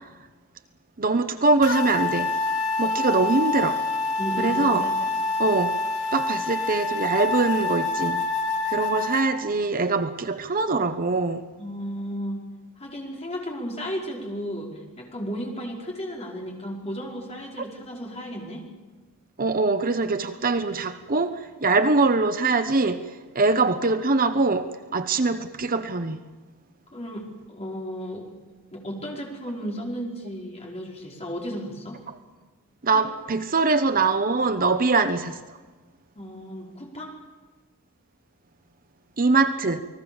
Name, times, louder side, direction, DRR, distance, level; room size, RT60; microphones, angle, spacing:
voice 1, 1.0-2.3 2.8-3.8 4.4-4.9 5.4-5.8 6.1-8.2 8.7-11.5 19.4-26.2 32.8-35.6 39.2-39.8, right 3 dB, 40° right, 0.9 m, -23 dB
sound 1, 1.6-9.2, left 2 dB, 85° left, 3.9 m, -26 dB
voice 2, 4.2-4.9 11.6-12.4 12.8-18.7 26.9-28.3 28.7-32.0 32.9-33.1 36.1-37.1, equal, 30° left, 5.1 m, -34 dB
29.0 x 20.0 x 7.2 m
head